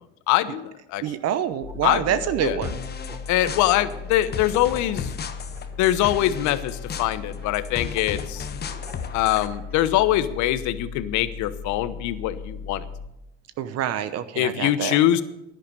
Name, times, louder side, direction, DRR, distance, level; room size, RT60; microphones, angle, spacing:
voice 1, 0.3-1.0 1.8-2.6 3.3-5.1 5.8-8.5 9.1-12.8 14.4-15.2, left 13 dB, 55° left, 14 dB, 1.0 m, -23 dB
sound 1, 1.0-1.9 2.1-6.5 7.3-9.9, right 3 dB, 25° right, 4.6 m, -45 dB
voice 2, 1.0-2.8 13.6-15.0, right 10 dB, 45° right, 13 dB, 0.9 m, -26 dB
sound 2, 1.6-13.1, left 5 dB, 70° left, 2.9 m, -37 dB
sound 3, 2.6-9.5, left 7 dB, 25° left, 1.1 m, -36 dB
11.0 x 10.5 x 6.7 m, 0.89 s
hypercardioid pair, 95°, 36 cm